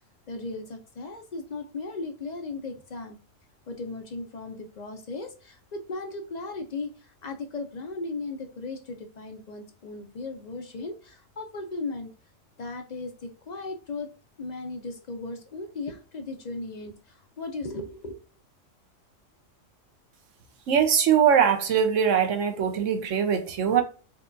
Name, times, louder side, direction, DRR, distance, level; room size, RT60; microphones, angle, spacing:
voice 1, 0.3-3.2 3.7-12.1 12.6-14.1 14.4-18.2, left 3 dB, 55° left, 0.4 m, -36 dB
voice 2, 20.7-23.8, right 8 dB, 75° right, 1.0 m, -22 dB
4.4 x 2.3 x 2.5 m
omnidirectional pair, 1.4 m